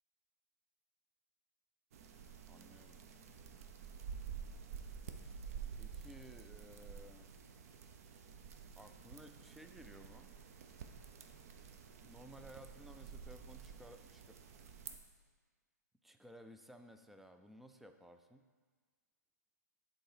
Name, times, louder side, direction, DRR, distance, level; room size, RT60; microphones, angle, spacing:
sound 1, 1.9-15.0, right 7 dB, 55° right, 0.7 m, -50 dB
voice 1, 2.5-3.0 5.7-7.3 8.8-10.3 12.0-14.4 16.0-18.4, equal, ahead, 7 dB, 0.3 m, -57 dB
8.8 x 3.9 x 4.9 m, 1.5 s
hypercardioid pair, 130°, 10 cm